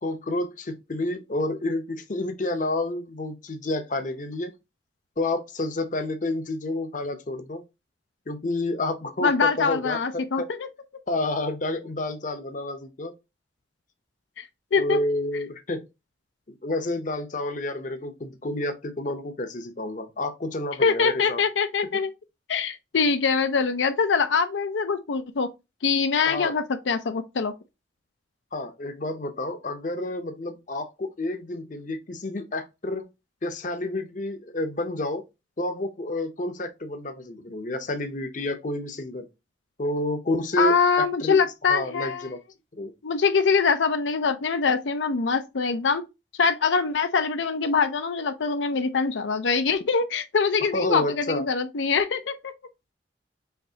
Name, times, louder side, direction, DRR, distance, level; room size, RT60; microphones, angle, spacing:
voice 1, 0.0-4.5 5.2-7.6 8.3-10.5 11.1-13.1 14.7-15.9 16.5-21.4 26.2-26.5 28.5-33.0 33.4-35.2 35.6-39.3 39.8-41.4 41.7-42.4 42.8-42.9 50.7-51.5, left 2 dB, 45° left, 0.7 m, -29 dB
voice 2, 9.2-10.4 14.4-15.0 20.8-22.1 22.5-25.5 25.8-27.5 40.6-42.3 43.0-46.0 46.4-52.5, left 5 dB, 85° left, 0.5 m, -23 dB
5.8 x 3.1 x 2.8 m
head